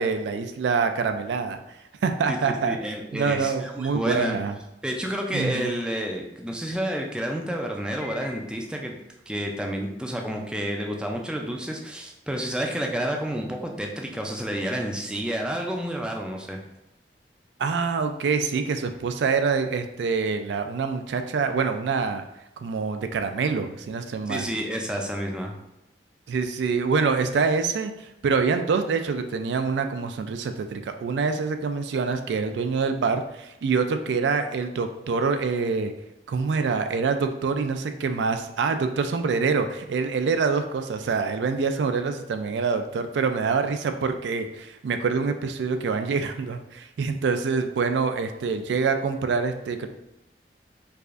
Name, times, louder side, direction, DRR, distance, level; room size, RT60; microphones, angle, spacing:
voice 1, 0.0-1.6 2.0-2.8 3.1-4.6 5.3-5.7 17.6-22.2 22.6-24.4 26.3-35.9 36.3-49.9, right 5 dB, 80° right, 7 dB, 0.3 m, -25 dB
voice 2, 2.6-4.3 4.8-8.9 9.3-16.6 24.3-25.6, equal, 5° right, 1 dB, 0.3 m, -30 dB
Piano, 8.0-9.3, left 2 dB, 85° left, 0.9 m, -44 dB
4.7 x 2.5 x 2.4 m, 0.89 s
head